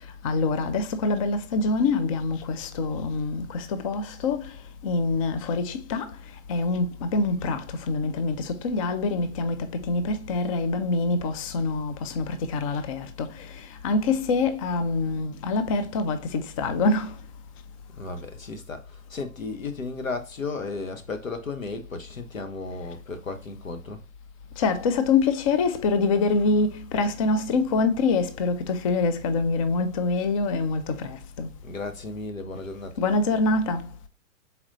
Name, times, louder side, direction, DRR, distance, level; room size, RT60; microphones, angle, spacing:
voice 1, 0.2-4.4 4.8-6.0 6.5-6.8 7.1-7.6 7.9-9.6 9.9-12.3 12.5-13.3 13.8-17.1 24.6-26.7 26.9-28.6 28.8-30.8 31.4-31.5 33.0-33.8, left 3 dB, 30° left, 0.4 m, -25 dB
voice 2, 17.9-24.0 31.6-33.0, left 3 dB, 90° left, 1.0 m, -34 dB
4.3 x 4.0 x 2.6 m
figure-of-eight pair, 120°, 39 cm